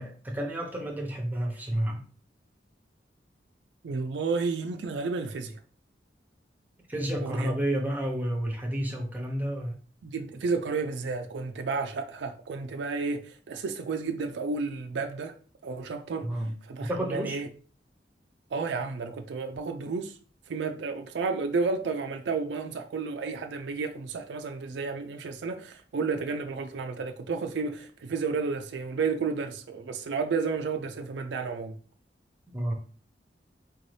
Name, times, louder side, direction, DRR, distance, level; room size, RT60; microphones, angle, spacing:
voice 1, 0.0-2.0 6.9-9.7 16.2-16.5 16.8-17.4 32.5-32.7, right 1 dB, 10° right, 0.8 m, -30 dB
voice 2, 3.8-5.6 7.2-7.5 10.0-15.3 15.6-16.3 16.6-17.5 18.5-20.2 20.5-31.8, right 4 dB, 80° right, 0.4 m, -32 dB
4.4 x 2.7 x 3.2 m
head